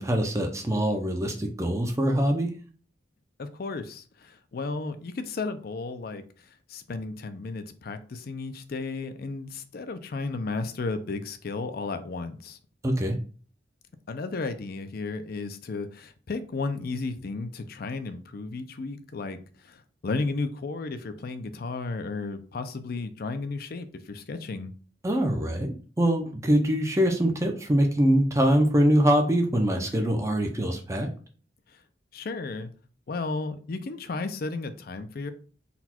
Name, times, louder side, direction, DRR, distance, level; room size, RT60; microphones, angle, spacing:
voice 1, 0.0-2.5 12.8-13.1 25.0-31.1, equal, 15° right, 2 dB, 0.5 m, -23 dB
voice 2, 3.4-12.6 14.1-24.7 32.1-32.7 33.1-35.3, left 3 dB, 55° left, 10 dB, 0.5 m, -34 dB
4.1 x 2.3 x 4.3 m, 0.40 s
head